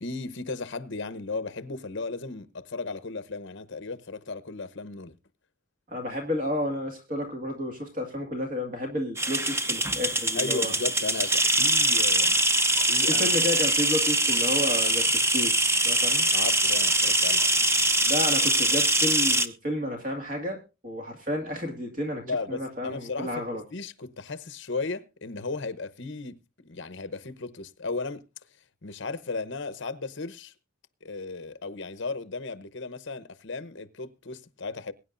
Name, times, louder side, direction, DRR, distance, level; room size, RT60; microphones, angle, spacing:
voice 1, 0.0-5.2 10.3-12.4 12.9-13.3 16.3-17.4 22.2-28.2 28.8-30.5 31.0-34.9, left 3 dB, 55° left, 0.9 m, -35 dB
voice 2, 5.9-10.7 13.1-16.3 18.0-23.6, left 1 dB, 40° right, 2.0 m, -31 dB
sound 1, 9.2-19.5, right 1 dB, 15° right, 0.8 m, -23 dB
22.0 x 9.9 x 2.6 m
head